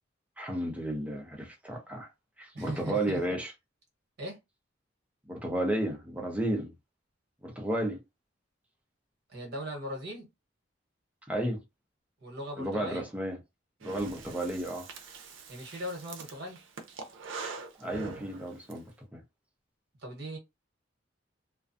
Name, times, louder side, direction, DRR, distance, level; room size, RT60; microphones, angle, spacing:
voice 1, 0.4-2.1 2.4-3.5 5.3-6.7 7.4-8.0 11.3-11.6 12.6-13.4 13.8-14.9 17.8-19.2, right 1 dB, 5° right, 0.6 m, -32 dB
voice 2, 2.5-3.2 4.2-4.4 9.3-10.3 12.2-13.1 15.5-16.6 20.0-20.4, equal, 60° right, 1.1 m, -39 dB
Breathing, 13.8-18.8, right 4 dB, 85° right, 0.5 m, -44 dB
2.4 x 2.2 x 2.5 m
head